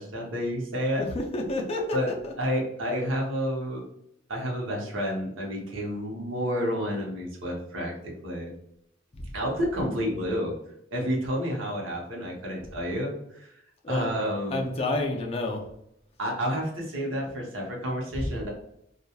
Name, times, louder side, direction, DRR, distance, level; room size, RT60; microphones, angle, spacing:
voice 1, 0.0-1.0 1.9-2.1 2.4-3.8 4.3-8.5 9.3-10.6 10.9-13.6 13.9-14.6 16.2-18.5, equal, 75° right, -1 dB, 0.8 m, -30 dB
voice 2, 1.0-2.0 2.2-2.3 9.1-9.3 13.8-14.1 14.5-15.7 18.1-18.3, left 2 dB, 30° left, 1 dB, 0.4 m, -29 dB
2.9 x 2.3 x 2.2 m, 0.76 s
head